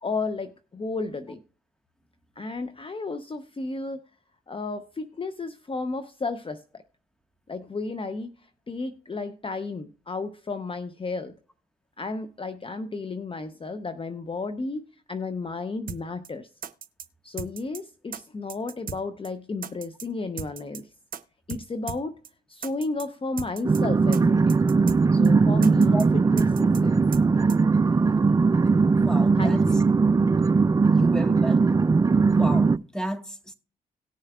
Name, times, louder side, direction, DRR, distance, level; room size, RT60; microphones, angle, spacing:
voice 1, 0.0-1.4 2.4-4.0 4.5-6.8 7.5-8.3 8.7-11.3 12.0-16.5 17.2-20.9 21.5-22.2 22.5-24.6 25.1-26.0 26.3-27.0 29.4-29.8, left 3 dB, 30° left, 0.8 m, -33 dB
sound 1, 15.9-16.0 16.2-16.3 16.6-17.1 17.4-17.8 18.1-18.2 18.5-19.0 19.2-19.3 19.6-20.1 20.4-20.8 21.1-21.2 21.5-21.6 21.9-22.0 22.2-22.3 22.6-23.1 23.4-23.8 24.1-24.2 24.5-25.0 25.2-25.3 25.6-26.1 26.4-26.8 27.1-27.2 27.5-27.6, right 7 dB, 50° right, 0.8 m, -36 dB
sound 2, 23.6-32.8, right 4 dB, 20° right, 0.3 m, -20 dB
voice 2, 28.9-29.6 30.9-31.9 32.2-33.5, equal, 5° left, 1.5 m, -33 dB
18.0 x 6.5 x 2.4 m
supercardioid pair, 50°, 18 cm